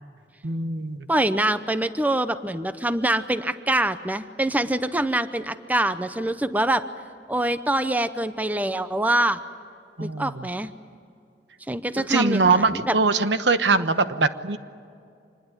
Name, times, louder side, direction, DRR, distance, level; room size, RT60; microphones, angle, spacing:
voice 1, 0.4-1.1 10.0-10.5 12.0-14.6, right 4 dB, 70° right, 11 dB, 1.1 m, -22 dB
voice 2, 1.1-6.8 7.3-9.4 10.0-10.7 11.7-12.9, right 1 dB, 10° right, 11 dB, 0.8 m, -24 dB
26.0 x 21.0 x 9.8 m, 2.4 s
head